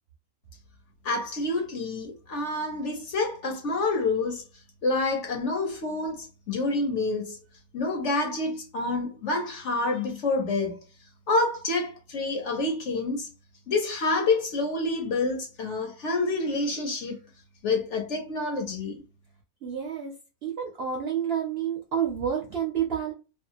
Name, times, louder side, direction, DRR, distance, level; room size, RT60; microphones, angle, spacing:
voice 1, 1.0-4.4 4.8-7.4 7.7-10.8 11.3-13.3 13.7-17.2 17.6-19.0, left 3 dB, 60° left, 0.9 m, -28 dB
voice 2, 19.6-20.1 20.4-23.1, right 8 dB, 60° right, 0.6 m, -29 dB
2.6 x 2.3 x 2.7 m
omnidirectional pair, 1.6 m